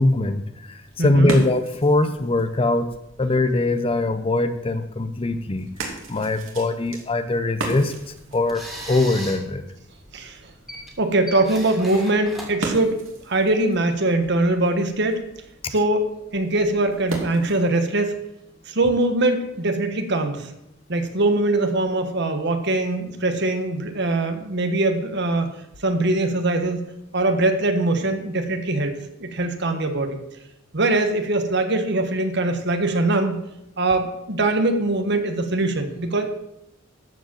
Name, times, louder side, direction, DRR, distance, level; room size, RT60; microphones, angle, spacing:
voice 1, 0.0-2.9 3.2-5.7 6.1-7.9 8.3-9.6, left 2 dB, 25° left, 10 dB, 0.7 m, -22 dB
sound 1, 0.7-17.8, right 2 dB, 80° right, 2.7 m, -38 dB
voice 2, 1.0-1.4 10.1-10.4 11.0-15.3 15.7-18.2 18.7-20.5 20.9-25.5 25.8-26.9 27.1-30.2 30.7-33.4 33.8-36.3, right 2 dB, 55° right, 7 dB, 1.4 m, -22 dB
sound 2, 8.0-13.4, right 1 dB, ahead, 2.6 m, -39 dB
13.5 x 5.1 x 7.7 m, 0.83 s
head